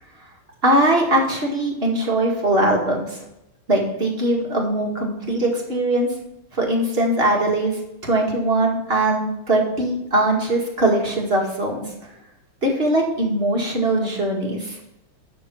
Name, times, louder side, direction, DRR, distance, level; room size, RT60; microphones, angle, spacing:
voice 1, 0.6-3.1 3.7-6.1 6.5-11.8 12.6-14.8, right 1 dB, 30° right, -1 dB, 2.1 m, -21 dB
12.0 x 4.3 x 6.1 m, 0.85 s
omnidirectional pair, 2.3 m